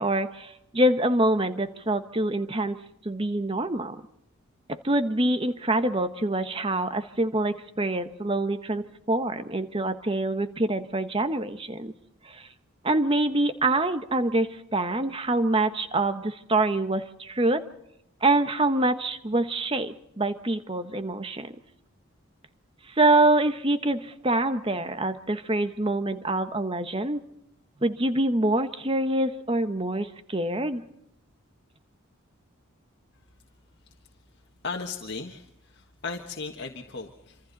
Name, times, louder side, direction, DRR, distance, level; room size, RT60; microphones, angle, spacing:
voice 1, 0.0-4.0 4.7-11.9 12.2-12.5 12.8-17.6 18.2-21.5 22.9-27.2 27.8-30.8, right 2 dB, 25° right, 10 dB, 1.2 m, -25 dB
voice 2, 34.6-37.4, left 4 dB, 55° left, 1 dB, 1.5 m, -36 dB
27.0 x 26.5 x 4.1 m, 0.80 s
head